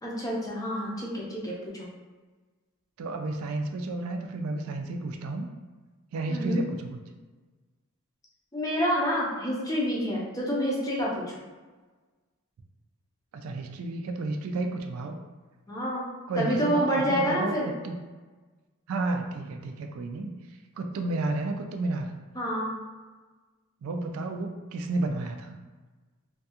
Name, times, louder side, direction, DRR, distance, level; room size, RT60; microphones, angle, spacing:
voice 1, 0.0-1.9 6.3-6.6 8.5-11.2 15.7-16.1 16.4-17.7 22.4-22.7, equal, 15° left, -4 dB, 0.5 m, -28 dB
voice 2, 3.0-5.5 6.1-7.0 13.3-15.2 16.3-17.5 17.8-18.0 18.9-20.3 20.8-22.1 23.8-25.6, right 2 dB, 70° right, 4 dB, 0.3 m, -31 dB
2.5 x 2.3 x 2.7 m, 1.3 s
head